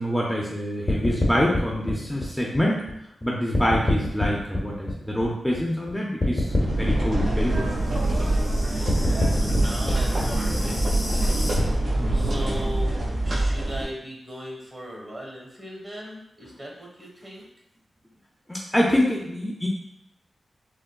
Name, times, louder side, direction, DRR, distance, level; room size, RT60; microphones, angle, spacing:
voice 1, 0.0-2.8 3.2-7.7 8.1-8.2 12.0-12.3 18.5-19.7, equal, 10° left, -3 dB, 0.5 m, -26 dB
sound 1, 0.9-3.2 3.5-5.9 6.2-11.6, left 2 dB, 50° left, 0.8 m, -27 dB
sound 2, 6.5-13.8, right 1 dB, 70° right, 1.1 m, -24 dB
voice 2, 8.9-12.9 13.2-17.5, equal, 35° right, -2 dB, 1.2 m, -39 dB
3.6 x 2.1 x 2.2 m, 0.82 s
cardioid pair, 50°, 0 cm